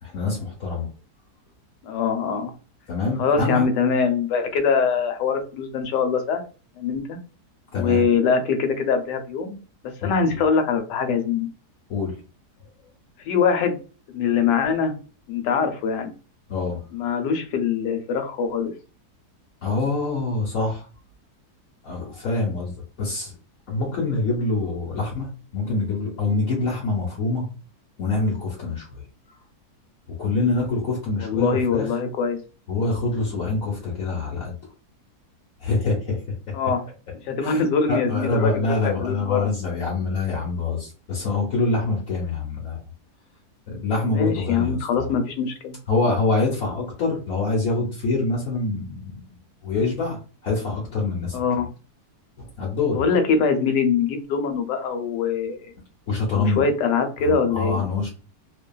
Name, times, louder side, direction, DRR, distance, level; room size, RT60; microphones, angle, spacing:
voice 1, 0.0-0.9 2.9-3.6 7.7-8.0 10.0-10.1 11.9-12.2 16.5-16.8 19.6-20.8 21.8-22.7 23.0-23.3 23.7-27.5 28.0-29.0 30.2-31.9 32.7-34.5 35.6-36.2 37.4-37.6 37.9-42.8 43.7-45.1 45.9-49.2 49.6-51.4 52.4-53.0 56.1-56.6 57.2-58.1, left 3 dB, 60° left, -3 dB, 1.1 m, -25 dB
voice 2, 1.8-2.5 3.2-6.4 6.8-7.2 7.7-9.5 10.0-11.5 13.3-13.8 14.1-14.9 15.3-16.1 16.9-18.7 31.2-32.4 36.5-36.8 37.3-39.8 44.1-45.7 51.3-51.7 52.9-55.7 56.3-57.8, left 5 dB, 85° left, 6 dB, 1.2 m, -23 dB
2.6 x 2.4 x 2.2 m, 0.35 s
omnidirectional pair, 1.8 m